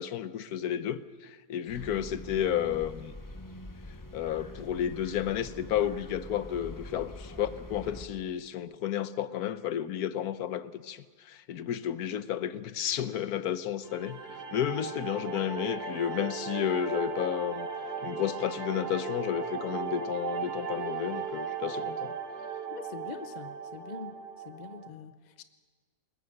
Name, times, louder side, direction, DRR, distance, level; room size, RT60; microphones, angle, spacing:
voice 1, 0.0-3.1 4.1-17.7 18.0-22.2, left 10 dB, 80° left, 13 dB, 1.3 m, -32 dB
sound 1, 1.7-8.1, left 1 dB, 15° left, 0.8 m, -44 dB
sound 2, 13.8-24.9, right 6 dB, 90° right, 2.0 m, -37 dB
voice 2, 14.5-14.9 22.7-24.1 24.4-25.4, left 6 dB, 50° left, 10 dB, 0.5 m, -44 dB
21.0 x 20.0 x 6.5 m, 1.4 s
omnidirectional pair, 1.6 m